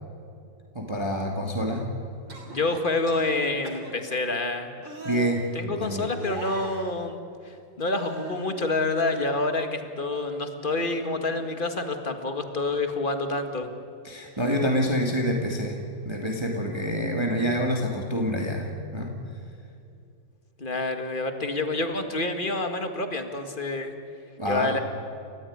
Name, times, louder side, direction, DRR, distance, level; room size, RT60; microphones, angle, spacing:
voice 1, 0.7-1.9 5.0-6.1 14.0-15.8 16.0-18.7 18.9-19.1 24.4-24.8, equal, 15° right, 1 dB, 2.2 m, -27 dB
sound 1, 2.3-2.6 3.1-3.3 3.6-3.9 4.8-5.3 6.1-6.9 7.9-8.5 9.0-9.8 10.1-10.4 10.8-11.6 12.9-13.0, right 3 dB, 70° right, 4.1 m, -40 dB
voice 2, 2.5-4.7 5.5-13.7 20.6-24.0 24.5-24.8, left 2 dB, 25° left, 6 dB, 1.9 m, -28 dB
29.5 x 15.0 x 9.6 m, 2.5 s
omnidirectional pair, 2.1 m